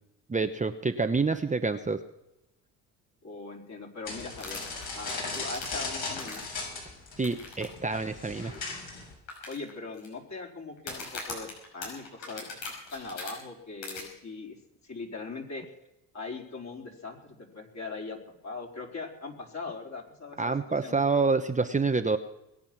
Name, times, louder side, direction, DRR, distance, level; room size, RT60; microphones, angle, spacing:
voice 1, 0.3-2.0 7.2-8.5 20.4-22.2, right 4 dB, 15° right, 7 dB, 1.0 m, -27 dB
voice 2, 3.2-4.6 4.9-6.5 9.5-14.6 14.8-15.6 16.1-21.0, left 3 dB, 40° left, 1 dB, 4.4 m, -40 dB
sound 1, 4.1-9.1, left 3 dB, 60° left, 7.4 m, -37 dB
sound 2, 4.3-6.7 7.2-7.6 7.9-8.0 8.5-8.6 9.3-10.1 10.8-13.3 13.8-14.0, left 4 dB, 90° left, 5.8 m, -40 dB
21.5 x 9.0 x 6.1 m, 0.88 s
supercardioid pair, 65°, 42 cm